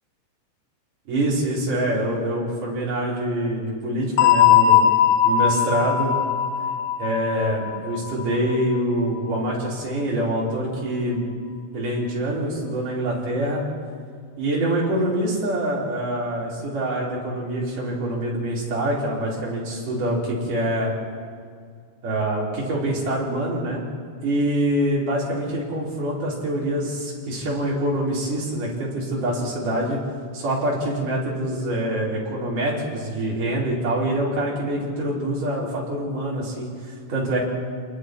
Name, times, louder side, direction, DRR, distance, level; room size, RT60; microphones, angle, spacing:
voice 1, 1.1-4.9 5.2-6.1 7.0-11.2 11.7-13.7 14.4-20.9 22.0-23.8 24.2-30.0 30.3-37.4, right 1 dB, 45° right, -5 dB, 6.3 m, -25 dB
sound 1, 4.2-8.8, left 9 dB, 90° left, 1.5 m, -19 dB
29.0 x 21.5 x 4.9 m, 2.1 s
omnidirectional pair, 5.3 m